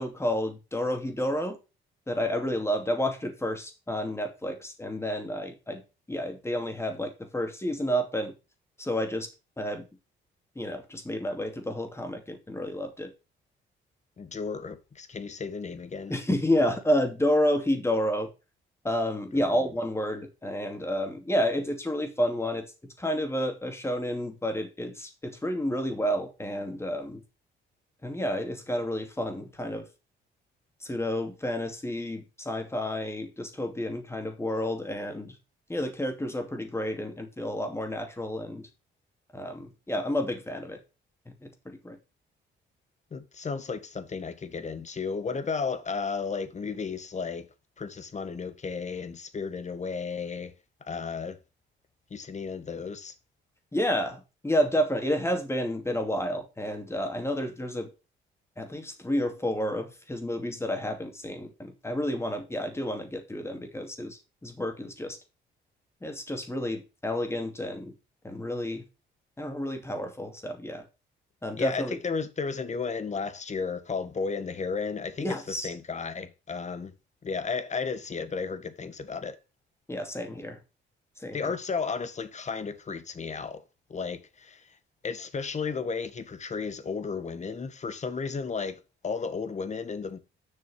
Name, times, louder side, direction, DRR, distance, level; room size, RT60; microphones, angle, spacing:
voice 1, 0.0-1.6 2.1-5.8 6.1-8.3 8.8-9.3 9.6-9.8 10.6-13.1 16.1-18.3 18.8-22.7 23.0-27.2 28.0-29.9 30.8-35.3 35.7-38.7 39.3-40.8 41.3-42.0 53.7-57.9 58.6-65.2 66.0-67.9 68.2-68.8 69.4-70.8 71.4-72.0 75.2-75.7 79.9-80.6 81.2-81.5, equal, 15° left, 2.6 m, -30 dB
voice 2, 14.2-16.1 19.3-19.5 43.1-47.5 47.8-50.5 50.8-51.4 52.1-53.1 71.6-76.9 77.2-79.3 81.3-83.6 83.9-84.8 85.0-90.2, left 5 dB, 35° left, 1.6 m, -33 dB
7.4 x 6.2 x 6.5 m
cardioid pair, 90°, 20 cm